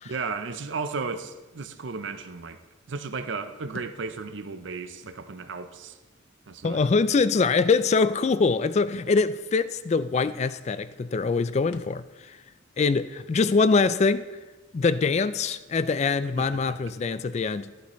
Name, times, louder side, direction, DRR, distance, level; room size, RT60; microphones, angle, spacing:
voice 1, 0.0-2.6 2.9-6.0 6.5-6.9 16.4-16.9, right 4 dB, 65° right, 0.6 m, -34 dB
Thump thud, 3.7-4.0 5.0-5.2 6.5-6.9 7.3-7.4 8.9-9.1 9.9-10.0 10.2-10.5 11.7-12.0, left 3 dB, 70° left, 0.6 m, -45 dB
voice 2, 6.6-12.0 12.8-14.2 14.7-17.7, left 4 dB, 35° left, 0.3 m, -23 dB
14.0 x 11.5 x 3.1 m
head